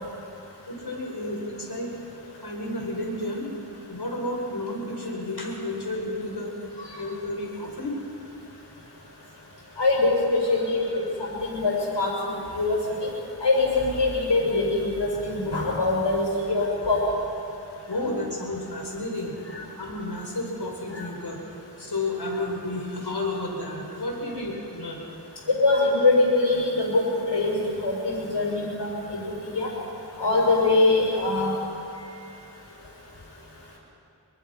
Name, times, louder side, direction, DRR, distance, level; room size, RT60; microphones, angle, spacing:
voice 1, 0.7-1.9 2.4-3.5 3.9-6.5 7.0-8.0 17.9-19.3 19.8-21.4 21.8-25.0, left 1 dB, 65° left, 0 dB, 5.4 m, -31 dB
voice 2, 9.8-13.1 13.4-17.1 18.0-18.1 20.9-21.0 25.5-27.0 27.3-29.2 29.4-29.7 30.2-31.5, left 2 dB, 90° left, -3 dB, 6.6 m, -23 dB
25.5 x 23.0 x 5.9 m, 2.6 s
wide cardioid pair, 55°, 41 cm